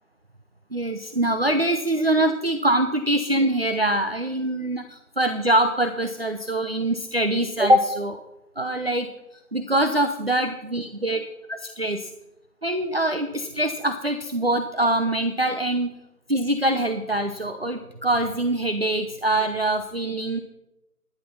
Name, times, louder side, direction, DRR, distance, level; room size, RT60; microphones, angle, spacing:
voice 1, 0.7-8.2 8.6-9.1 9.5-11.2 11.8-12.1 12.6-15.9 16.3-20.4, right 1 dB, 40° right, 7 dB, 0.7 m, -23 dB
12.5 x 10.5 x 5.7 m, 0.94 s
figure-of-eight pair, 170°, 46 cm